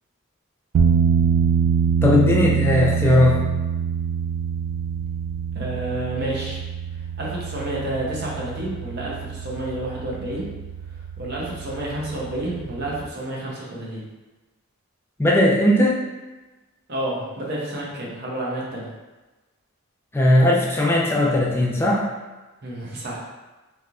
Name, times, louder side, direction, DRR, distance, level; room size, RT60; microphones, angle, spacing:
sound 1, 0.7-13.1, right 6 dB, 90° right, 0.3 m, -25 dB
voice 1, 2.0-3.4 15.2-16.0 20.1-22.1, left 1 dB, 10° left, -2 dB, 0.3 m, -18 dB
voice 2, 5.5-6.6 7.2-10.5 11.2-14.1 16.9-18.9 22.6-23.2, right 1 dB, 50° right, -5 dB, 0.8 m, -30 dB
3.2 x 2.8 x 2.4 m, 1.2 s
head